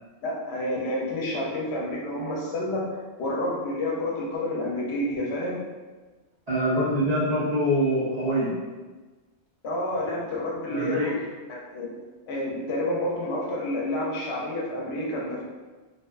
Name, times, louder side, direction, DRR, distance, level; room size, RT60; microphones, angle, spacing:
voice 1, 0.2-5.6 9.6-11.2 11.5-12.0 12.3-15.4, left 1 dB, 75° left, -3 dB, 0.8 m, -29 dB
voice 2, 6.5-8.5 10.7-11.1, equal, 45° right, -10 dB, 0.6 m, -24 dB
2.6 x 2.1 x 2.2 m, 1.3 s
omnidirectional pair, 1.1 m